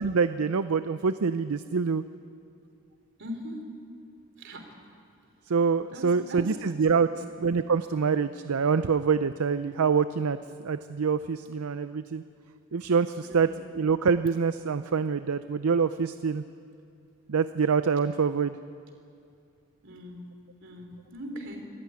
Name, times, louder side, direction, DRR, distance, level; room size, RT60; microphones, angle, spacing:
voice 1, 0.0-2.0 5.5-7.1 7.4-10.4 10.6-12.2 12.7-16.4 17.3-18.6, right 5 dB, 75° right, 12 dB, 0.5 m, -25 dB
voice 2, 3.2-3.6 4.4-4.7 5.9-6.5 7.1-7.3 13.2-13.5 19.8-21.6, equal, 55° right, 4 dB, 3.4 m, -40 dB
25.0 x 14.5 x 9.5 m, 2.5 s
head